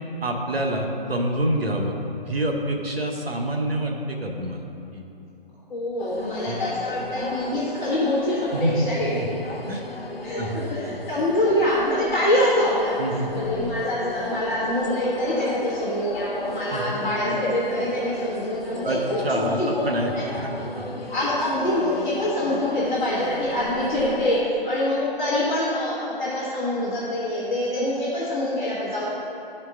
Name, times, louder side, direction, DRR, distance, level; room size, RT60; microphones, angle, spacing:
voice 1, 0.2-1.9 2.3-4.6 4.9-5.0 6.5-6.6 8.5-8.9 9.1-9.3 9.7-9.8 10.4-10.6 13.0-13.3 16.7-16.9 18.8-20.9, right 1 dB, 85° right, 2 dB, 1.1 m, -26 dB
voice 2, 5.7-9.2 10.2-12.9 13.3-19.9 20.1-20.2 21.1-29.0, left 1 dB, 15° left, -11 dB, 1.3 m, -25 dB
sound 1, 6.0-24.4, left 2 dB, 85° left, 0.9 m, -35 dB
12.0 x 4.5 x 3.7 m, 2.8 s
figure-of-eight pair, 145°, 29 cm